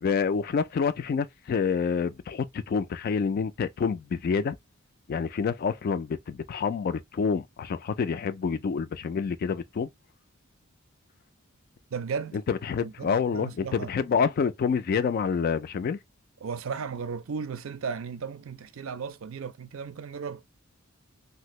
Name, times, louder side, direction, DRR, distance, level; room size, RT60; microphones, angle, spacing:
voice 1, 0.0-4.6 5.1-9.9 12.5-16.0, left 6 dB, 45° left, 0.3 m, -27 dB
voice 2, 11.9-12.4 12.8-13.9 16.4-20.4, right 6 dB, 75° right, 0.4 m, -35 dB
2.8 x 2.6 x 2.9 m
head